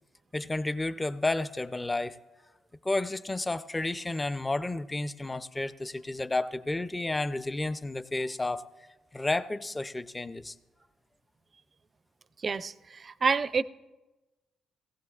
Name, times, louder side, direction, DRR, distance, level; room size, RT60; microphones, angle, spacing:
voice 1, 0.3-2.2 2.8-8.6 9.1-10.5, left 2 dB, 15° left, 0.5 m, -31 dB
voice 2, 12.4-13.6, right 5 dB, 40° right, 0.4 m, -28 dB
18.0 x 16.0 x 2.4 m
cardioid pair, 90°, 0 cm